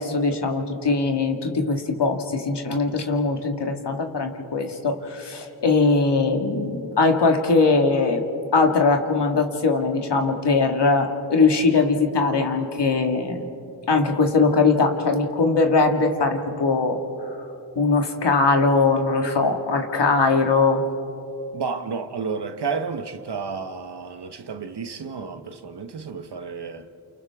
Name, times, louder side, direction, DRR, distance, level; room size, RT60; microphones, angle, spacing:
voice 1, 0.0-8.2 8.5-13.5 13.9-17.0 17.8-20.8, left 3 dB, 70° left, 2.0 m, -21 dB
voice 2, 21.5-26.9, right 5 dB, 70° right, 1.2 m, -31 dB
30.0 x 28.5 x 3.6 m
cardioid pair, 45°, 42 cm